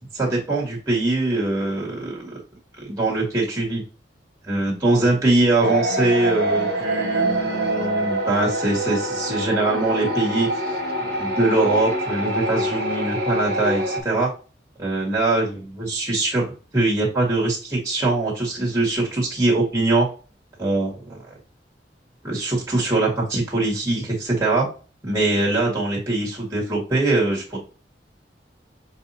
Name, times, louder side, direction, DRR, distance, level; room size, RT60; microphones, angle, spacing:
voice 1, 0.1-2.3 2.8-3.8 4.4-10.7 11.1-14.3 14.8-16.4 16.7-20.1 20.6-21.2 22.2-24.7 25.0-27.6, right 2 dB, 20° right, -5 dB, 2.0 m, -22 dB
sound 1, 5.6-14.0, right 1 dB, 60° right, 1.7 m, -25 dB
6.2 x 2.8 x 2.9 m, 0.35 s
head